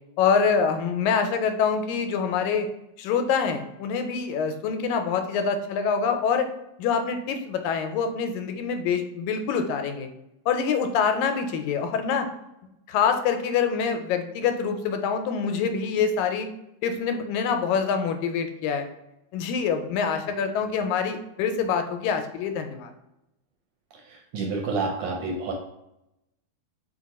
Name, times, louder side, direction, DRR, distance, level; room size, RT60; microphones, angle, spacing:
voice 1, 0.2-2.7 3.0-6.5 6.8-10.1 10.5-12.3 12.9-16.5 16.8-18.9 19.3-22.9, left 6 dB, 90° left, 6 dB, 2.0 m, -25 dB
voice 2, 24.0-25.5, right 3 dB, 80° right, 1 dB, 1.5 m, -29 dB
4.7 x 2.3 x 4.1 m, 0.88 s
omnidirectional pair, 3.3 m